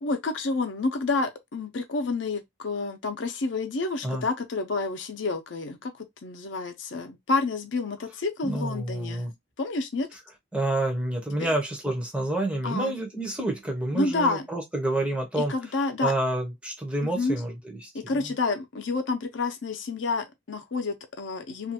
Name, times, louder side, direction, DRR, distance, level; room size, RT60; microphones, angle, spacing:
voice 1, 0.0-9.3 9.6-10.1 11.4-11.6 12.6-12.9 13.9-14.5 15.4-16.1 17.0-17.4 17.9-21.7, left 3 dB, 75° left, 0.6 m, -29 dB
voice 2, 8.4-9.3 10.5-15.5 16.0-17.9, right 1 dB, 5° right, 0.6 m, -28 dB
2.5 x 2.3 x 2.8 m
head